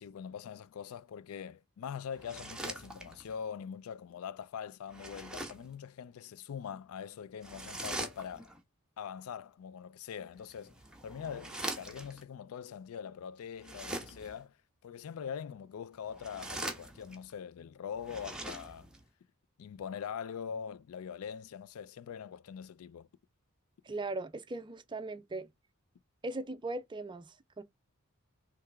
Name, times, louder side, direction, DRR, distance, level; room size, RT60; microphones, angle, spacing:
voice 1, 0.0-8.5 9.0-10.8 11.0-14.6 14.8-18.9 19.6-23.1, left 7 dB, 75° left, 0.3 m, -43 dB
sound 1, 2.1-3.4 4.9-5.7 7.4-8.6 10.4-12.2 13.6-14.4 16.0-17.3 18.0-19.0, right 1 dB, 5° right, 0.9 m, -42 dB
voice 2, 23.8-25.5 26.2-27.6, right 2 dB, 20° right, 0.5 m, -39 dB
3.7 x 3.2 x 4.4 m
head